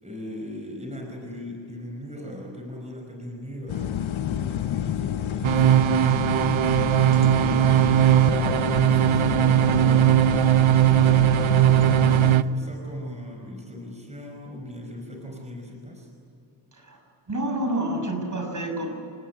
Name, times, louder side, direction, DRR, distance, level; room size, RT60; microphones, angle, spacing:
voice 1, 0.0-6.4 7.0-11.0 11.5-16.1, left 1 dB, 15° right, 1 dB, 5.1 m, -38 dB
sound 1, 3.7-12.4, left 10 dB, 90° left, 1.0 m, -29 dB
sound 2, 5.4-12.4, right 12 dB, 85° right, 0.9 m, -19 dB
voice 2, 17.3-18.9, right 1 dB, 40° right, 3 dB, 6.4 m, -28 dB
29.5 x 18.5 x 9.6 m, 2.7 s
wide cardioid pair, 95°, 46 cm